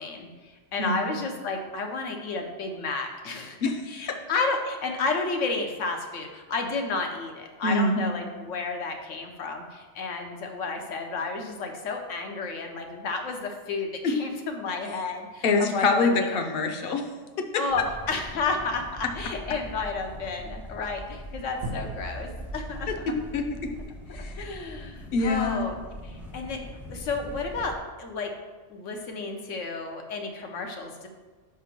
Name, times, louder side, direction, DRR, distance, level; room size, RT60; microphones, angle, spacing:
voice 1, 0.0-3.6 3.9-16.3 17.5-22.9 24.1-25.7 26.0-26.6 26.9-28.3 28.7-31.1, left 3 dB, 85° left, 3 dB, 1.2 m, -31 dB
voice 2, 7.6-8.0 14.0-14.2 15.4-17.1 17.4-17.6 22.9-23.7 24.1-24.5 25.1-25.6, left 3 dB, 55° left, 5 dB, 0.8 m, -25 dB
sound 1, 17.7-27.8, equal, ahead, 0.6 m, -41 dB
sound 2, 21.6-24.2, right 2 dB, 80° right, 1.1 m, -39 dB
5.8 x 3.6 x 5.9 m, 1.4 s
omnidirectional pair, 1.2 m